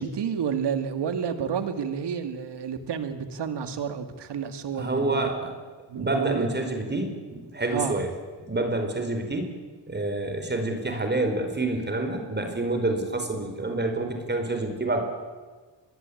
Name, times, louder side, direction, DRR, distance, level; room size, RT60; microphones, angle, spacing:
voice 1, 0.0-5.3 5.9-6.8 7.7-8.0, right 7 dB, 70° right, 9 dB, 2.7 m, -30 dB
voice 2, 4.8-5.5 5.9-8.1 8.5-9.5 9.9-15.0, right 2 dB, 25° right, 5 dB, 4.9 m, -28 dB
24.5 x 20.5 x 8.8 m, 1.4 s
cardioid pair, 85°, 43 cm